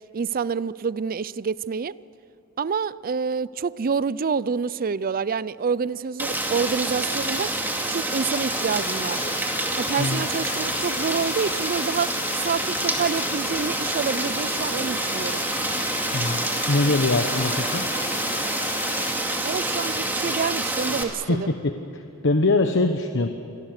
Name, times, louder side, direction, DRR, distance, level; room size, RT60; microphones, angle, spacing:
voice 1, 0.1-1.9 2.6-7.5 7.9-9.3 9.8-12.1 12.4-15.4 19.4-21.5, right 5 dB, 40° right, 19 dB, 0.5 m, -27 dB
Rain, 6.2-21.0, right 1 dB, 10° right, 2.4 m, -27 dB
sound 1, 8.5-19.1, left 6 dB, 35° left, 0.9 m, -36 dB
voice 2, 16.1-17.9 21.3-23.3, left 2 dB, 60° left, 6 dB, 1.1 m, -23 dB
28.0 x 22.5 x 6.6 m, 2.8 s
head